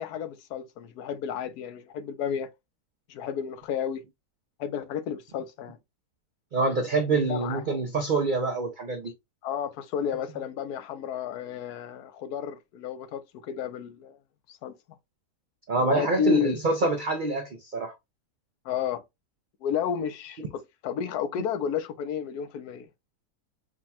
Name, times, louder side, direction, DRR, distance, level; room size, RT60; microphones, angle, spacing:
voice 1, 0.0-2.5 3.1-4.0 4.6-5.8 7.3-7.6 9.4-14.2 14.5-14.7 15.9-16.6 18.6-19.0 19.6-22.9, left 8 dB, 80° left, 1.2 m, -31 dB
voice 2, 6.5-9.1 15.7-17.9, right 3 dB, 85° right, 0.4 m, -26 dB
5.0 x 2.2 x 2.7 m
omnidirectional pair, 1.6 m